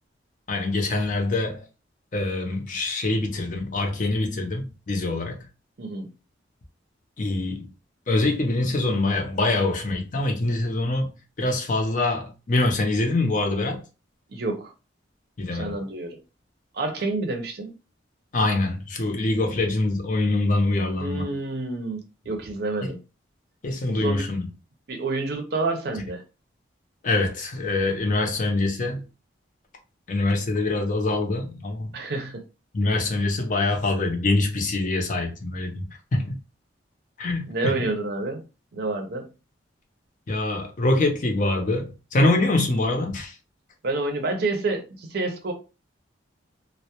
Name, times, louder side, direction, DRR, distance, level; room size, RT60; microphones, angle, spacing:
voice 1, 0.5-1.6 2.1-5.5 7.2-7.7 8.1-13.8 15.4-15.8 18.3-21.3 22.8-22.9 23.6-24.5 27.0-29.0 30.1-31.9 32.7-36.4 37.2-37.8 40.3-43.4, left 2 dB, 40° left, 0.5 m, -24 dB
voice 2, 14.3-14.7 15.5-16.2 16.7-17.7 21.0-23.0 23.9-24.3 24.9-26.2 31.9-32.4 37.5-38.4 38.7-39.3 43.8-45.5, right 2 dB, 55° right, 0.5 m, -28 dB
2.2 x 2.0 x 2.8 m
head